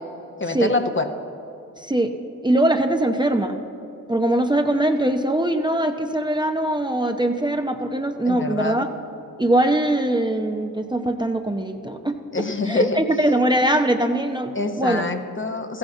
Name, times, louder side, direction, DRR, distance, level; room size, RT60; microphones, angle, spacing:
voice 1, 0.4-1.1 8.3-8.8 12.3-13.0 14.5-15.8, left 3 dB, 30° left, 6 dB, 1.1 m, -25 dB
voice 2, 1.8-2.1 2.4-3.6 4.1-8.9 9.4-15.0, right 1 dB, 10° right, 4 dB, 0.8 m, -22 dB
14.0 x 8.0 x 7.2 m, 3.0 s
supercardioid pair, 45°, 37 cm